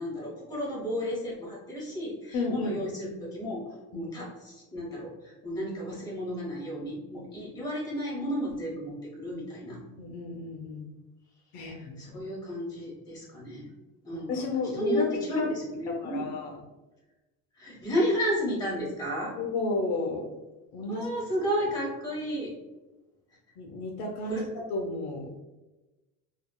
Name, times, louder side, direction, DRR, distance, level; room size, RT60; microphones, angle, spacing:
voice 1, 0.0-3.6 3.9-9.8 11.7-13.7 14.0-14.4 14.7-16.3 17.5-19.3 20.9-22.5 24.2-24.5, equal, 10° left, -6 dB, 1.2 m, -32 dB
voice 2, 2.3-2.8 3.9-4.1 9.7-10.9 11.5-12.1 14.1-15.5 15.9-16.6 19.4-20.2 20.7-21.1 23.6-25.3, left 3 dB, 70° left, 1 dB, 0.6 m, -32 dB
3.4 x 2.3 x 2.2 m, 1.1 s
cardioid pair, 135°, 31 cm